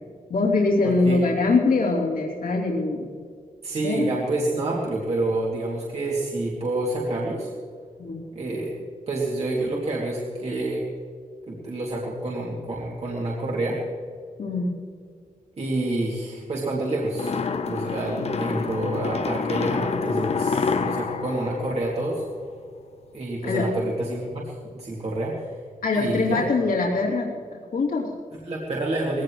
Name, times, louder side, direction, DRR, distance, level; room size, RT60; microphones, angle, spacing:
voice 1, 0.3-3.1 3.8-4.0 8.0-8.2 14.4-14.8 23.4-23.7 25.8-28.1, left 3 dB, 75° left, -3 dB, 3.1 m, -23 dB
voice 2, 0.8-1.2 3.6-7.5 8.3-10.8 11.5-13.8 15.6-17.3 17.7-22.2 23.1-25.5 25.9-26.5 28.3-29.2, right 2 dB, 45° right, -4 dB, 2.6 m, -28 dB
sound 1, 17.1-22.5, left 5 dB, 45° left, 0.8 m, -28 dB
20.5 x 17.0 x 3.2 m, 2.2 s
wide cardioid pair, 170°, 15 cm